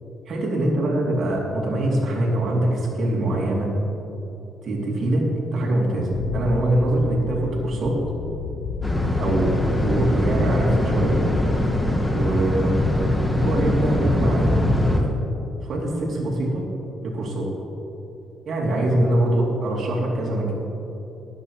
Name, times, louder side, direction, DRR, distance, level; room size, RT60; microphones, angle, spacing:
voice 1, 0.3-3.7 4.6-8.0 9.2-11.2 12.1-12.8 13.3-14.6 15.6-16.7 17.0-17.5 18.4-20.5, right 1 dB, 55° right, -3 dB, 3.0 m, -23 dB
sound 1, 6.1-12.5, left 5 dB, 75° left, 0.7 m, -32 dB
sound 2, 8.8-15.0, left 1 dB, 5° left, 1.5 m, -22 dB
15.0 x 11.0 x 3.2 m, 3.0 s
cardioid pair, 90°, 0 cm